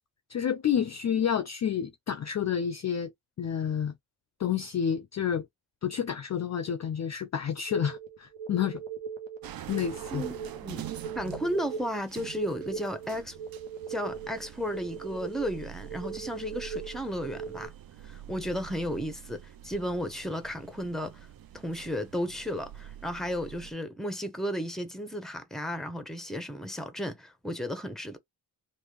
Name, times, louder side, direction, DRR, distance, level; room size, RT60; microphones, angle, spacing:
voice 1, 0.3-3.1 3.4-3.9 4.4-5.5 5.8-8.8 9.7-10.3, left 8 dB, 40° left, 0.4 m, -29 dB
sound 1, 7.7-17.7, right 7 dB, 80° right, 1.0 m, -39 dB
sound 2, 9.4-23.7, right 11 dB, 55° right, 0.5 m, -46 dB
voice 2, 10.1-10.9 11.1-13.4 13.9-17.7 18.0-21.3 21.5-28.2, equal, ahead, 0.8 m, -34 dB
3.4 x 2.5 x 3.0 m
cardioid pair, 85°, 44 cm